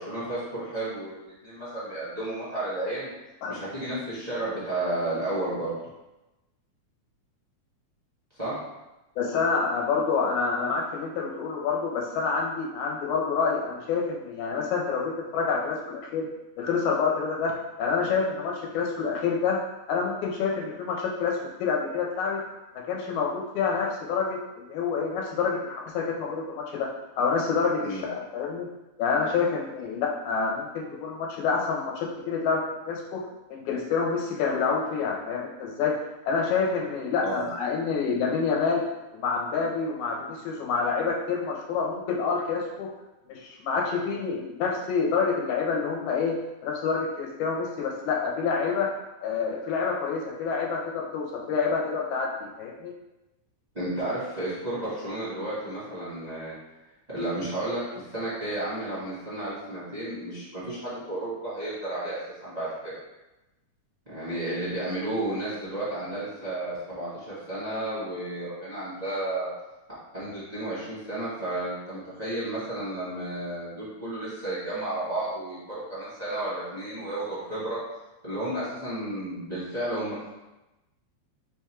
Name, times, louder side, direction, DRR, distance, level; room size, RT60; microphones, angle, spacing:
voice 1, 0.0-3.1 3.5-5.7 8.4-8.6 27.8-28.0 37.2-37.5 53.7-56.5 57.1-62.9 64.1-69.5 70.1-77.8 78.2-80.3, right 1 dB, 40° right, -11 dB, 0.6 m, -32 dB
voice 2, 9.2-16.3 16.6-17.5 17.8-19.6 19.9-22.4 22.9-26.9 27.2-28.7 29.0-32.6 32.9-33.2 33.5-35.9 36.3-38.8 39.1-42.9 43.3-46.4 46.6-48.9 49.2-52.9, left 5 dB, 90° left, -1 dB, 2.1 m, -27 dB
5.3 x 2.3 x 4.3 m, 1.0 s
omnidirectional pair, 3.5 m